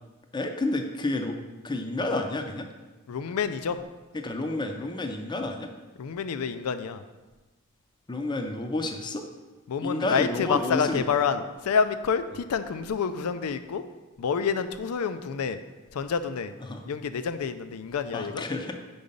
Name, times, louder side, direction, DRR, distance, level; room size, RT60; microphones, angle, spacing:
voice 1, 0.3-1.4 1.6-2.7 4.1-5.7 8.1-9.3 9.8-11.1 16.6-16.9 18.1-18.7, left 2 dB, 20° left, 5 dB, 0.5 m, -30 dB
voice 2, 3.1-3.8 6.0-7.0 9.7-13.8 14.2-15.6 15.9-16.5 16.9-18.4, left 6 dB, 85° left, 11 dB, 0.4 m, -28 dB
5.4 x 4.8 x 5.2 m, 1.2 s
head